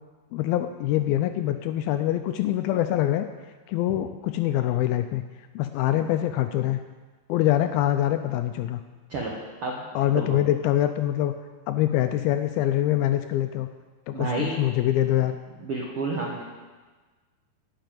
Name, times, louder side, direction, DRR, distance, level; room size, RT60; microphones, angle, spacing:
voice 1, 0.3-3.3 3.7-5.2 5.6-6.8 7.3-8.8 10.0-11.3 11.7-13.7 14.1-15.4, left 13 dB, 80° left, 8 dB, 2.3 m, -24 dB
voice 2, 14.1-14.5 15.6-16.4, right 3 dB, 75° right, -2 dB, 1.3 m, -30 dB
11.5 x 6.7 x 9.2 m, 1.4 s
omnidirectional pair, 4.5 m